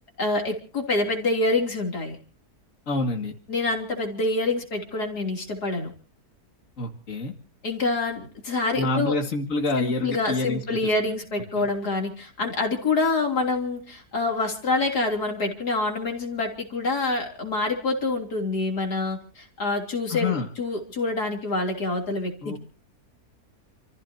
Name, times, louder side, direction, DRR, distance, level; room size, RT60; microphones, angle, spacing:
voice 1, 0.2-2.2 3.5-5.9 7.6-9.1 9.8-22.6, left 3 dB, 80° left, 1 dB, 3.9 m, -26 dB
voice 2, 2.9-3.3 6.8-7.3 8.7-10.9 11.5-11.7 20.1-20.5 22.4-22.6, left 3 dB, 55° left, 2 dB, 2.7 m, -27 dB
29.5 x 15.5 x 2.9 m, 0.42 s
omnidirectional pair, 1.7 m